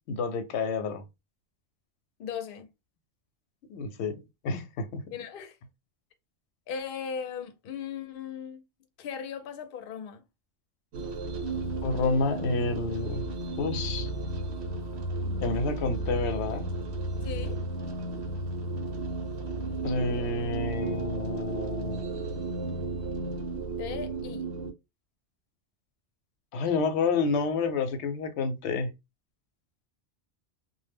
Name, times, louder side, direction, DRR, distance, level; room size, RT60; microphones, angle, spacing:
voice 1, 0.1-1.0 3.7-5.0 11.8-13.2 13.6-14.1 15.4-16.7 19.8-22.0 26.5-28.9, left 4 dB, 90° left, 0.9 m, -29 dB
voice 2, 2.2-2.7 5.1-5.6 6.7-8.6 9.0-10.2 17.2-17.6 23.8-24.5, left 7 dB, 65° left, 0.7 m, -37 dB
sound 1, 10.9-24.7, right 2 dB, 80° right, 0.8 m, -33 dB
2.1 x 2.0 x 3.4 m
omnidirectional pair, 1.1 m